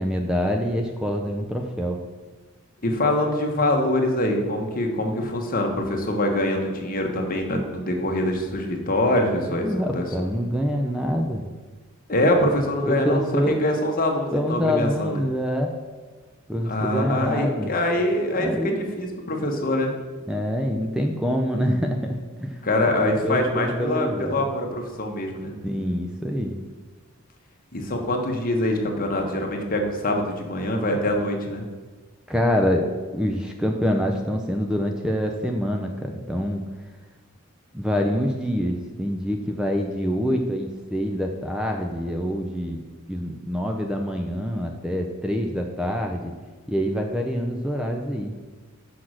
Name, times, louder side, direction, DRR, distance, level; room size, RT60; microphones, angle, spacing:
voice 1, 0.0-2.0 9.5-11.4 12.9-13.6 14.3-15.7 16.5-17.7 18.4-18.8 20.3-24.5 25.6-26.6 32.3-32.9 33.1-36.6 37.7-42.8 43.1-46.3 46.7-48.3, equal, 5° right, 2 dB, 0.5 m, -26 dB
voice 2, 2.8-10.0 12.1-15.2 16.7-19.9 22.6-25.5 27.7-31.6, left 1 dB, 45° left, 2 dB, 1.3 m, -24 dB
6.1 x 6.0 x 6.3 m, 1.4 s
head